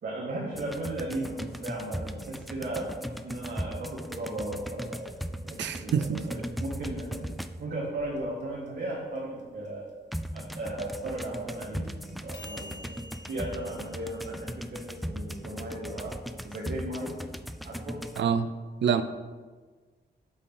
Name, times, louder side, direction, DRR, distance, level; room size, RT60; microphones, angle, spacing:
voice 1, 0.0-5.2 5.4-7.2 7.6-9.8 10.3-13.0 13.3-17.1 17.6-18.0, right 1 dB, 60° right, -5 dB, 1.6 m, -36 dB
sound 1, 0.5-7.8 10.1-18.2, equal, ahead, 0.3 m, -38 dB
voice 2, 5.6-6.2 18.2-18.5 18.8-19.0, right 7 dB, 80° right, 12 dB, 0.5 m, -26 dB
sound 2, 8.0-16.1, left 1 dB, 75° left, 1.3 m, -51 dB
8.4 x 4.3 x 5.4 m, 1.4 s
cardioid pair, 105°, 19 cm